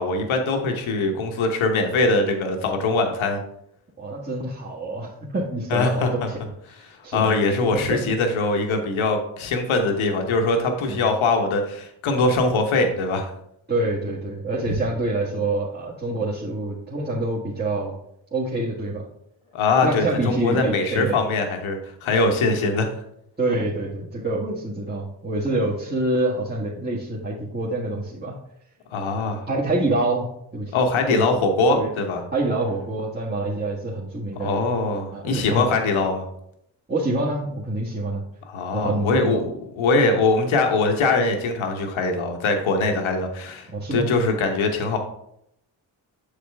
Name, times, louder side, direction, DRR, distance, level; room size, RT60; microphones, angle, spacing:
voice 1, 0.0-3.4 5.7-6.3 7.1-13.3 14.7-14.8 19.5-22.9 28.9-29.4 30.7-32.2 34.4-36.2 38.5-45.0, left 3 dB, 75° left, 4 dB, 1.2 m, -22 dB
voice 2, 4.0-6.4 7.0-7.3 7.7-8.0 10.9-11.1 13.7-17.9 18.3-19.0 19.8-21.2 23.4-28.4 29.5-30.2 30.5-30.7 31.1-31.2 31.7-31.9 32.3-34.7 35.1-35.6 36.9-38.2 38.7-39.4 43.7-44.1, right 2 dB, 20° right, -6 dB, 1.6 m, -26 dB
6.9 x 4.9 x 3.5 m, 0.75 s
supercardioid pair, 45°, 49 cm